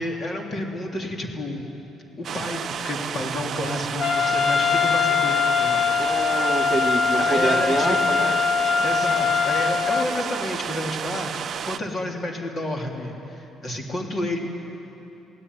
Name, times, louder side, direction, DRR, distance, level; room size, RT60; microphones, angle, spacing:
voice 1, 0.0-1.7 2.2-5.9 7.2-8.0 8.8-14.4, left 1 dB, 35° left, 1 dB, 3.2 m, -30 dB
sound 1, 2.2-11.8, right 8 dB, 50° right, 0.7 m, -31 dB
Trumpet, 4.0-10.1, left 5 dB, 60° left, 1.4 m, -22 dB
voice 2, 6.0-8.4, right 2 dB, ahead, -5 dB, 2.3 m, -26 dB
28.5 x 17.5 x 9.5 m, 3.0 s
cardioid pair, 125°, 0 cm